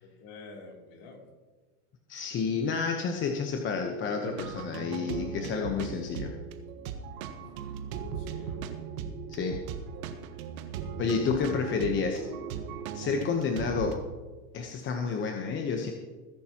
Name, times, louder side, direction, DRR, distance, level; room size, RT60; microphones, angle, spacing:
voice 1, 0.0-1.3 7.4-7.8 8.2-8.7, left 3 dB, 45° left, 0 dB, 3.4 m, -49 dB
voice 2, 2.1-6.3 9.3-9.6 11.0-12.3 12.9-14.0 14.5-15.9, left 5 dB, 25° left, 3 dB, 1.0 m, -30 dB
sound 1, 4.2-13.9, right 7 dB, 65° right, 1.5 m, -38 dB
21.0 x 10.5 x 3.0 m, 1.3 s
supercardioid pair, 130°, 46 cm